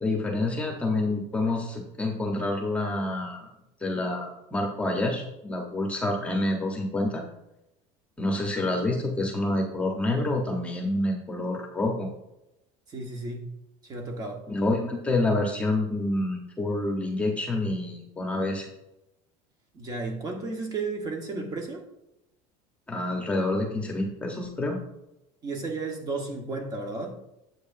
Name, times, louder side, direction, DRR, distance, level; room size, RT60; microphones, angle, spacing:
voice 1, 0.0-3.5 3.8-7.2 8.2-12.1 14.5-18.7 22.9-24.8, left 2 dB, 10° left, 1.2 m, -28 dB
voice 2, 12.9-13.5 13.8-14.4 19.7-21.8 25.4-27.2, right 3 dB, 25° right, 1.4 m, -33 dB
9.5 x 7.9 x 2.7 m
cardioid pair, 165°, 15 cm